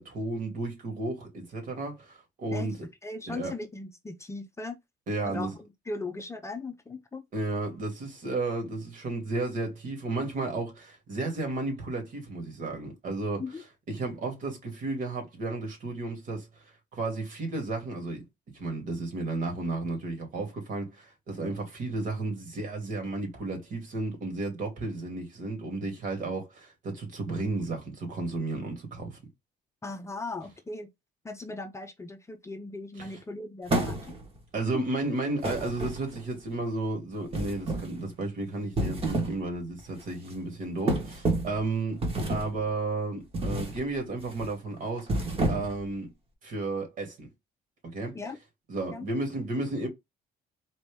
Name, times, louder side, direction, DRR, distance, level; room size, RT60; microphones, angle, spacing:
voice 1, 0.0-2.9 3.3-3.5 5.1-5.5 7.3-16.6 16.9-18.2 18.5-29.2 32.9-33.2 34.5-42.0 42.3-46.1 46.4-47.3 47.9-48.3 48.7-49.9, right 2 dB, 50° right, 2.3 m, -33 dB
voice 2, 3.0-4.8 5.2-5.5 5.9-7.2 13.4-13.6 29.8-30.9 31.2-34.2 34.7-34.8 48.1-48.4 48.9-49.1, left 3 dB, 15° left, 0.6 m, -38 dB
sound 1, 33.7-34.4 35.4-36.3 37.3-38.0 38.6-39.4 39.8-40.0 40.9-41.6 42.0-42.6 43.3-43.8 44.2-44.5 45.0-45.9, right 2 dB, 35° right, 1.5 m, -29 dB
4.1 x 2.9 x 3.5 m
cardioid pair, 110°, 17 cm